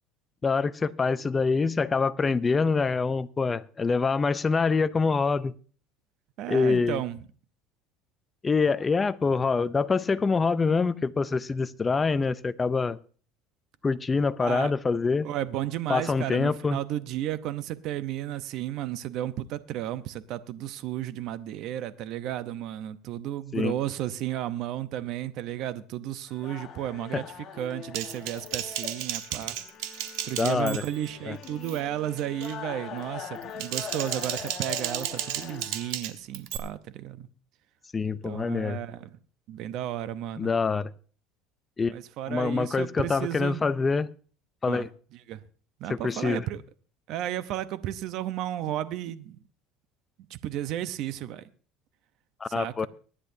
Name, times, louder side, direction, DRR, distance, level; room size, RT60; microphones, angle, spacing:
voice 1, 0.4-5.5 6.5-7.0 8.4-13.0 13.8-15.3 15.9-16.8 23.5-23.7 30.4-30.8 31.3-31.4 37.9-38.8 40.4-40.9 41.8-41.9 42.3-44.1 44.6-44.9 45.9-46.4 52.4-52.9, left 4 dB, 20° left, 0.5 m, -25 dB
voice 2, 6.4-7.2 14.4-14.7 15.2-29.6 30.2-37.3 38.2-39.2 39.5-40.5 41.8-43.6 44.7-44.9 45.3-45.4 45.8-46.6 47.1-49.4 50.3-51.5 52.5-52.9, right 12 dB, 55° right, 0.8 m, -33 dB
sound 1, 26.3-35.9, left 8 dB, 40° left, 1.4 m, -42 dB
Typing, 27.9-31.1 31.4-31.8 32.2-32.6 33.4-36.6, right 12 dB, 75° right, 1.3 m, -34 dB
23.5 x 10.0 x 2.7 m
cardioid pair, 140°, 0 cm